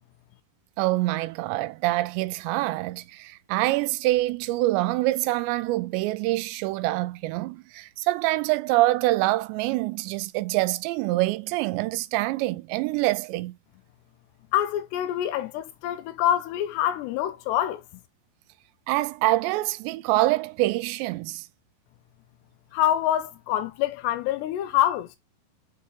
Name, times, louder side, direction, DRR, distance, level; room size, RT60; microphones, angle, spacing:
voice 1, 0.8-13.6 18.9-21.5, right 18 dB, 90° right, 2.8 m, -25 dB
voice 2, 14.5-17.8 22.7-25.1, left 12 dB, 85° left, 2.8 m, -25 dB
6.5 x 4.3 x 3.6 m
omnidirectional pair, 5.0 m